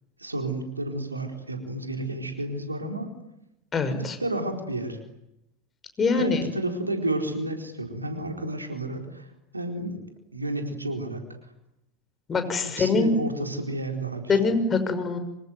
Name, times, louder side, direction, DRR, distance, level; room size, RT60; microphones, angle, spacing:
voice 1, 0.2-3.1 4.2-5.0 6.1-10.0 10.3-11.2 12.7-14.5, right 1 dB, 90° right, 4 dB, 4.3 m, -31 dB
voice 2, 3.7-4.2 6.0-6.4 12.3-13.1 14.3-15.2, left 4 dB, 25° left, 8 dB, 5.9 m, -23 dB
26.0 x 24.5 x 9.3 m, 0.84 s
figure-of-eight pair, 80°, 0 cm